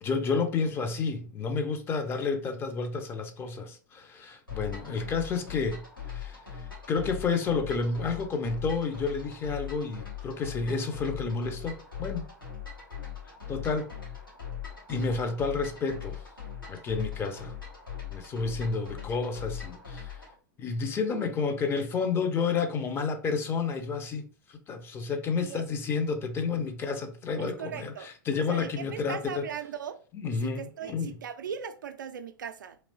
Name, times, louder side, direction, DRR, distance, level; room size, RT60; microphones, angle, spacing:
voice 1, 0.0-5.8 6.1-12.2 13.5-13.9 14.9-16.2 16.7-17.5 18.1-20.2 20.6-24.2 24.5-29.4 30.1-31.1, left 4 dB, 20° left, 0.5 m, -30 dB
sound 1, 4.5-20.3, left 8 dB, 85° left, 1.5 m, -40 dB
voice 2, 27.4-28.1 28.4-30.0 30.4-32.8, right 8 dB, 65° right, 0.4 m, -39 dB
3.1 x 2.9 x 2.6 m
figure-of-eight pair, 100°, 11 cm